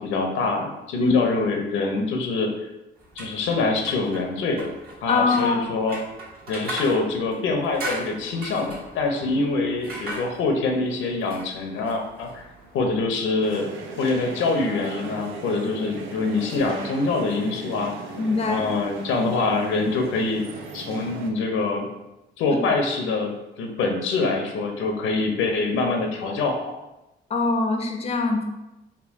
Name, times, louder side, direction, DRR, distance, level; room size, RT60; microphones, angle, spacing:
voice 1, 0.0-2.5 3.2-4.7 5.0-6.0 6.5-12.4 12.7-13.7 14.0-17.9 18.5-20.4 20.7-21.9 22.4-23.3 23.6-26.7, left 3 dB, 85° left, 3 dB, 0.6 m, -25 dB
sound 1, 3.0-13.1, right 1 dB, 50° right, 1.4 m, -39 dB
voice 2, 5.1-5.7 18.2-18.6 27.3-28.4, left 3 dB, 30° left, 3 dB, 0.5 m, -22 dB
sound 2, 13.4-21.3, right 4 dB, 80° right, 0.6 m, -38 dB
3.6 x 2.2 x 3.5 m, 0.96 s
cardioid pair, 90°, 20 cm